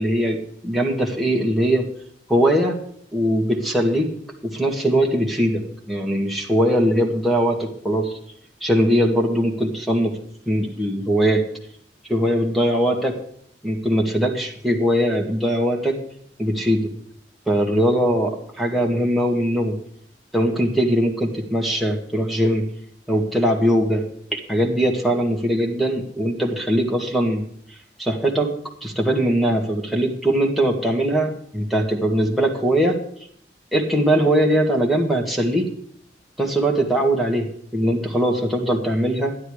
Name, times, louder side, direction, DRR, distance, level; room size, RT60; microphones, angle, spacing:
voice 1, 0.0-1.9 2.3-2.8 3.1-4.1 4.4-8.1 8.6-10.1 10.5-11.4 12.1-13.2 13.6-16.0 16.4-16.9 17.5-19.8 20.3-22.6 23.1-24.0 24.3-27.4 28.0-28.5 28.8-33.0 33.7-35.7 36.4-39.3, equal, ahead, -2 dB, 2.1 m, -21 dB
12.0 x 10.5 x 4.9 m, 0.65 s
head